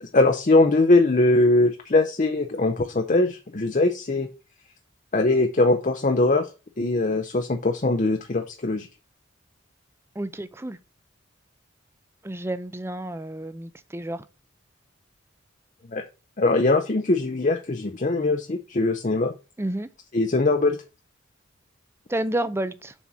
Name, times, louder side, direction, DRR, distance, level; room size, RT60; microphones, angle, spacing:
voice 1, 0.0-4.3 5.1-6.5 6.8-8.9 15.9-16.0 16.4-19.3 20.1-20.8, left 2 dB, 40° left, 0.6 m, -21 dB
voice 2, 10.2-10.8 12.2-14.3 19.6-19.9 22.1-22.9, right 1 dB, 10° right, 0.5 m, -30 dB
7.2 x 4.2 x 6.0 m
head